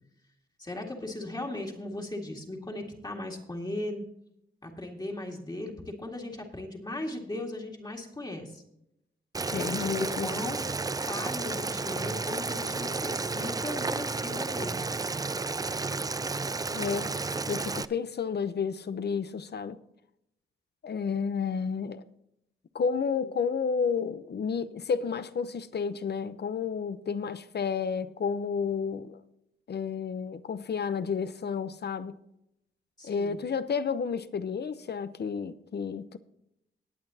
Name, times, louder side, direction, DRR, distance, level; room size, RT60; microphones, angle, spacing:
voice 1, 0.6-4.0 4.6-8.6 9.5-10.6 10.9-14.8 33.0-33.3, left 1 dB, 20° left, 2.0 m, -37 dB
Boiling, 9.3-17.8, right 3 dB, 20° right, 0.4 m, -32 dB
voice 2, 9.5-10.3 16.7-19.8 20.8-22.0 22.7-29.2 29.7-32.2 33.0-36.2, left 6 dB, 55° left, 0.7 m, -31 dB
19.0 x 8.6 x 2.8 m
wide cardioid pair, 130°, 20 cm